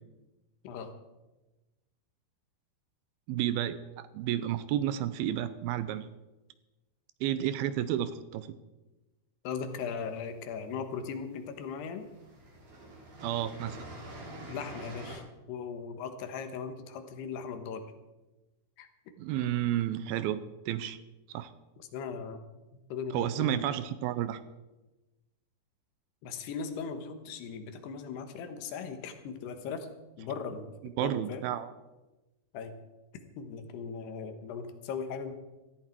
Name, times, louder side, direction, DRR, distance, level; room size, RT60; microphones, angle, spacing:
voice 1, 3.3-6.1 7.2-8.6 13.2-13.8 19.2-21.0 21.3-21.5 23.1-24.4 31.0-31.7, right 11 dB, 80° right, 13 dB, 2.4 m, -31 dB
voice 2, 9.4-12.1 14.5-17.8 18.8-18.9 21.8-22.4 22.7-23.7 26.2-29.9 30.2-30.7 31.0-31.4 32.5-32.7 33.4-35.3, left 6 dB, 90° left, 8 dB, 3.4 m, -38 dB
sound 1, 9.8-10.7 11.5-11.7 12.0-15.2, right 1 dB, 55° right, 4.8 m, -45 dB
17.5 x 14.0 x 4.6 m, 1.1 s
omnidirectional pair, 4.6 m